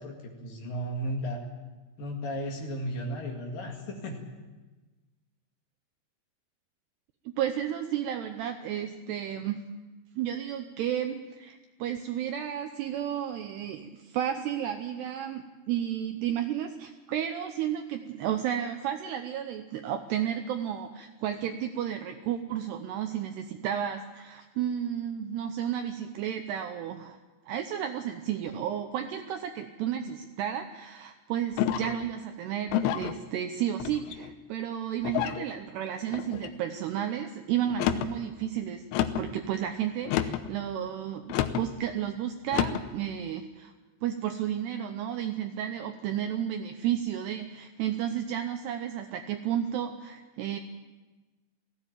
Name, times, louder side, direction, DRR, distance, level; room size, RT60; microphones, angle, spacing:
voice 1, 0.0-1.4 2.0-4.2, equal, 55° left, 1 dB, 3.2 m, -34 dB
voice 2, 7.3-9.6 10.2-27.2 27.5-38.8 39.2-43.7 44.0-50.6, right 10 dB, 80° right, 7 dB, 2.5 m, -32 dB
sound 1, 31.6-32.0 32.7-33.2 33.8-34.3 35.0-35.5 36.1-36.5 37.7-38.2 38.9-39.3 40.0-40.5 41.3-41.7 42.5-42.9, left 11 dB, 80° left, 3.2 m, -29 dB
18.5 x 16.0 x 9.0 m, 1.2 s
omnidirectional pair, 5.6 m